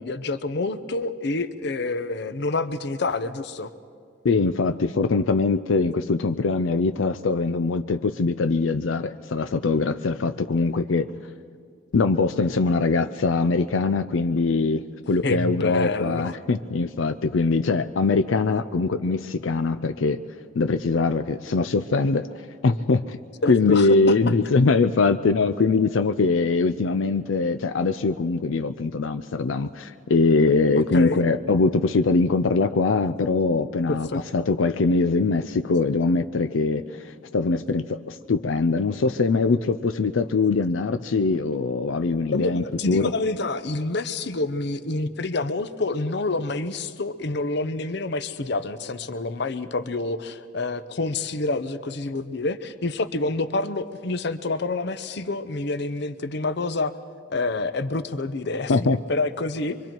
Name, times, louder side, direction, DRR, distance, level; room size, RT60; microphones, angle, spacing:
voice 1, 0.0-3.7 15.2-16.3 23.4-24.2 30.9-31.2 34.1-34.2 42.3-56.9 57.3-59.8, left 3 dB, 60° left, 12 dB, 0.8 m, -27 dB
voice 2, 4.2-11.1 11.9-20.2 20.5-23.2 23.5-34.1 34.3-43.1 58.7-59.0, left 3 dB, 90° left, 10 dB, 0.5 m, -22 dB
25.0 x 23.5 x 4.5 m, 2.1 s
head